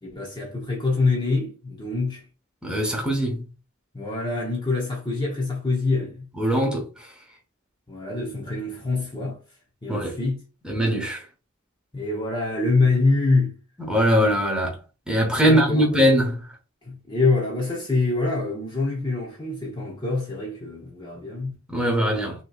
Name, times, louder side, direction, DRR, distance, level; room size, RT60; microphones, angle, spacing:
voice 1, 0.0-2.3 3.9-6.2 7.9-9.4 9.8-10.4 11.9-13.6 15.4-16.1 16.8-21.6, left 3 dB, 20° left, 0.9 m, -25 dB
voice 2, 2.6-3.5 6.4-6.9 9.9-10.2 10.6-11.2 13.8-14.8 15.1-16.4 21.7-22.4, equal, 5° right, 1.2 m, -21 dB
5.8 x 3.0 x 2.4 m
head